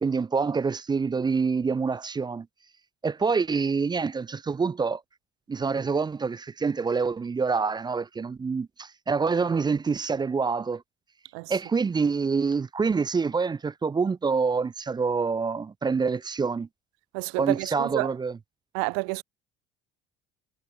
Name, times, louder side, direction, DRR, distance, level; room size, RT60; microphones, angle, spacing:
voice 1, 0.0-2.5 3.0-5.0 5.5-10.8 11.5-16.7 17.4-18.4, right 5 dB, 15° right, 0.3 m, -26 dB
voice 2, 17.1-18.1 18.7-19.2, right 40 dB or more, 70° right, 1.2 m, -29 dB
hypercardioid pair, 60°, 35 cm